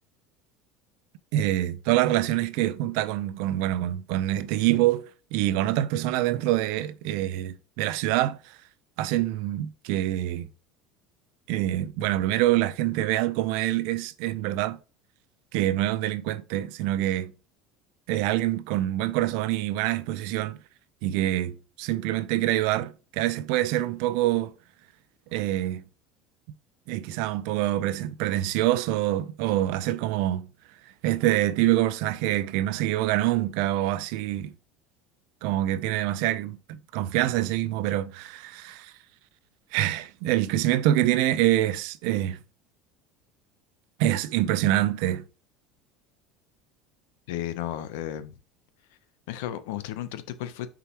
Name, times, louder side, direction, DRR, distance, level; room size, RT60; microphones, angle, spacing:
voice 1, 1.3-5.0 5.3-8.4 9.0-10.5 11.5-14.8 15.5-17.3 18.1-20.6 21.0-24.5 25.3-25.8 26.9-30.5 31.0-34.5 35.4-38.9 39.7-42.4 44.0-45.2, right 14 dB, 70° right, 0.5 m, -25 dB
voice 2, 47.3-48.4 49.3-50.7, left 12 dB, 85° left, 0.7 m, -33 dB
6.7 x 4.9 x 2.9 m
cardioid pair, 145°, 0 cm